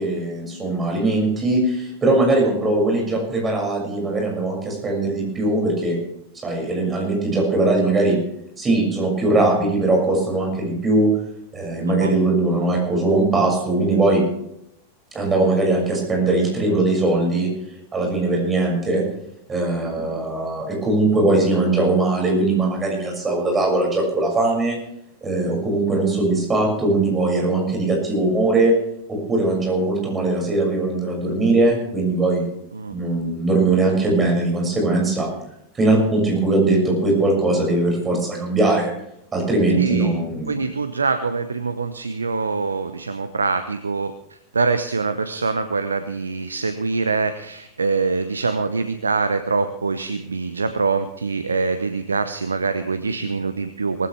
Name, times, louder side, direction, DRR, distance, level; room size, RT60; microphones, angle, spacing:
voice 1, 0.0-6.0 6.4-8.2 8.6-11.1 11.5-14.2 15.1-17.5 17.9-19.0 19.5-24.8 25.2-28.7 29.1-32.5 32.9-35.3 35.7-38.9 39.3-40.6, right 2 dB, 20° right, 0 dB, 6.4 m, -20 dB
voice 2, 39.7-40.1 40.5-44.1 44.5-54.1, right 4 dB, 75° right, 11 dB, 0.8 m, -24 dB
19.0 x 15.5 x 3.4 m, 0.75 s
figure-of-eight pair, 90°, 0 cm